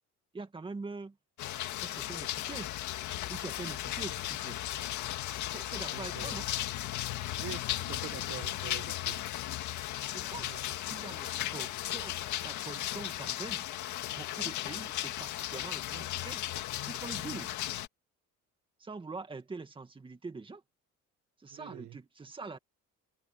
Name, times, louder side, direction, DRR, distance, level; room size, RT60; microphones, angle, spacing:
voice 1, 0.3-1.2 1.6-2.7 3.3-4.6 5.5-6.5 10.1-10.5 10.9-13.6 14.1-16.4 16.9-17.5 18.8-20.6 21.4-22.6, right 3 dB, 15° right, 2.2 m, -44 dB
sound 1, 1.4-17.9, left 13 dB, 75° left, 2.2 m, -36 dB
voice 2, 5.9-6.4 7.4-9.2 10.4-10.6 21.5-22.0, right 13 dB, 70° right, 1.9 m, -45 dB
open air
cardioid pair, 150°, 30 cm